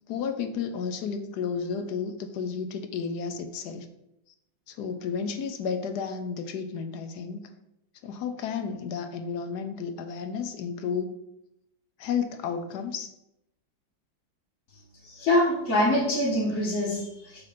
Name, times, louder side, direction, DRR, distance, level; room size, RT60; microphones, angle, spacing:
voice 1, 0.1-3.9 4.7-7.4 8.0-11.1 12.0-13.1, left 6 dB, 70° left, 8 dB, 1.1 m, -32 dB
voice 2, 15.0-17.4, left 1 dB, 40° left, -7 dB, 1.6 m, -25 dB
7.5 x 3.2 x 5.7 m, 0.85 s
omnidirectional pair, 2.1 m